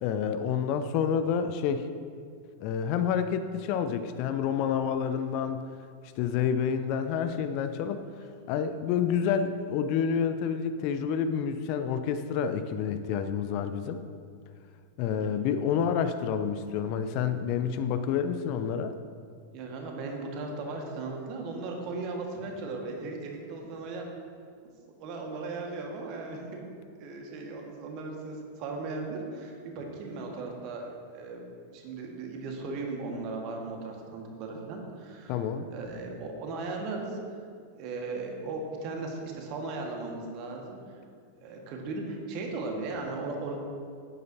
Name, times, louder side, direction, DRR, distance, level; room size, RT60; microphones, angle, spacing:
voice 1, 0.0-1.9 2.6-5.6 6.2-8.0 8.5-14.0 15.0-18.9 35.3-35.6, left 7 dB, 45° left, 9 dB, 0.5 m, -28 dB
voice 2, 19.5-24.1 25.0-26.6 27.0-30.9 31.1-31.4 31.7-35.4 35.7-37.2 37.7-41.0 41.4-43.6, right 3 dB, 40° right, 1 dB, 1.7 m, -37 dB
12.0 x 9.3 x 2.8 m, 2.2 s
figure-of-eight pair, 90°, 0 cm